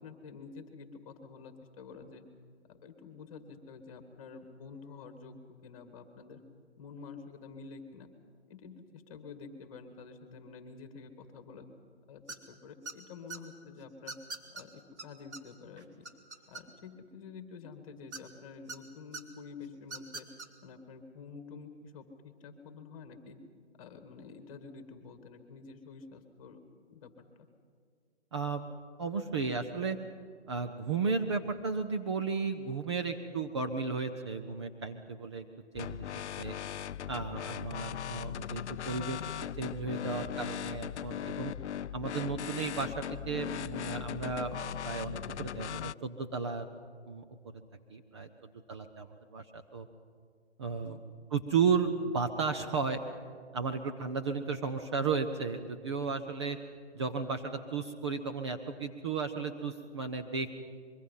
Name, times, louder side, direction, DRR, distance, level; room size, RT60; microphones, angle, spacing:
voice 1, 0.0-2.2 2.7-6.4 6.8-8.1 8.5-11.7 12.1-14.1 14.5-16.1 16.5-20.3 20.6-23.4 23.8-26.6 26.9-27.5 50.7-51.0, left 5 dB, 30° left, 7 dB, 2.1 m, -49 dB
sound 1, 12.3-12.5 12.9-13.4 14.1-14.6 15.0-15.1 15.3-15.4 15.8-16.9 18.1-18.8 19.1-19.2 19.8-20.5, right 3 dB, 85° right, 2.4 m, -42 dB
voice 2, 28.3-28.6 29.0-30.0 30.5-35.4 35.7-36.1 36.4-36.6 37.1-39.2 39.6-41.5 41.9-46.7 47.1-47.2 47.9-49.9 50.6-51.0 51.3-53.0 53.5-56.6 56.9-60.5, right 5 dB, 25° right, 5 dB, 0.7 m, -34 dB
sound 2, 35.7-45.9, left 10 dB, 85° left, 0.5 m, -39 dB
24.5 x 23.0 x 5.6 m, 2.1 s
hypercardioid pair, 155°, 33 cm